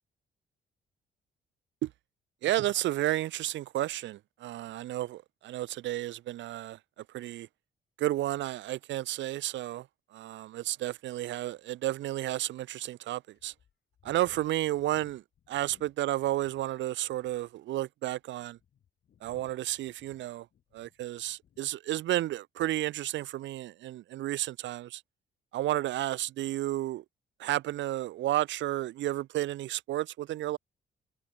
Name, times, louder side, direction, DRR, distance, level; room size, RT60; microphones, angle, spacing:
voice 1, 2.4-6.8 7.1-7.5 8.0-9.9 10.1-13.5 14.0-15.2 15.5-18.6 19.2-20.5 20.7-25.0 25.5-27.0 27.4-30.6, right 14 dB, 70° right, 0.4 m, -32 dB
sound 1, 11.2-11.3 11.9-12.0 12.6-12.7 13.3-16.7 17.0-17.5 18.2-21.7 22.0-22.3, left 9 dB, 60° left, 2.6 m, -62 dB
cardioid pair, 90°, 20 cm